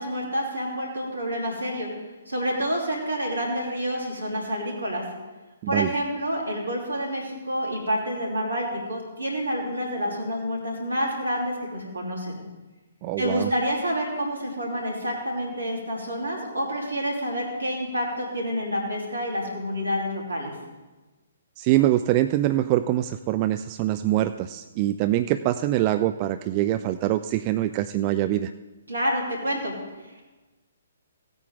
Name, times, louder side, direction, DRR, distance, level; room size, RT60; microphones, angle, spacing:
voice 1, 0.0-1.9 2.3-5.0 5.7-12.4 13.2-20.5 28.9-29.7 30.0-30.2, equal, 80° right, -1 dB, 3.0 m, -28 dB
voice 2, 5.6-5.9 13.0-13.5 21.6-28.5, right 14 dB, 30° right, 11 dB, 0.3 m, -24 dB
16.5 x 9.1 x 3.6 m, 1.2 s
figure-of-eight pair, 130°, 0 cm